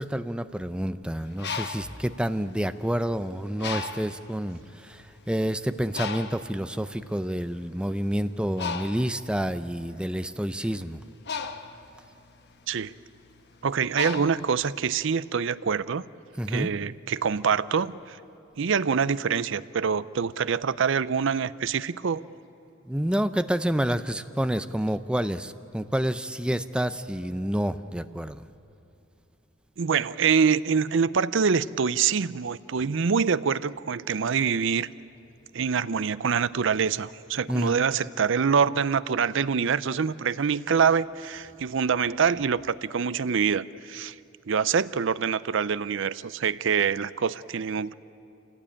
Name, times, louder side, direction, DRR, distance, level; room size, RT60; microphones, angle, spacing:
voice 1, 0.0-11.0 16.4-16.7 22.8-28.4 37.5-37.8, equal, 5° right, 11 dB, 0.6 m, -28 dB
Bird, 1.2-3.0 3.6-4.3 4.9-5.1 5.3-15.1, left 5 dB, 55° left, 1.1 m, -37 dB
voice 2, 13.6-16.1 16.5-18.2 18.6-22.3 29.8-34.9 35.5-44.2 44.5-47.9, right 6 dB, 65° right, 16 dB, 0.5 m, -25 dB
27.5 x 17.0 x 8.6 m, 2.7 s
head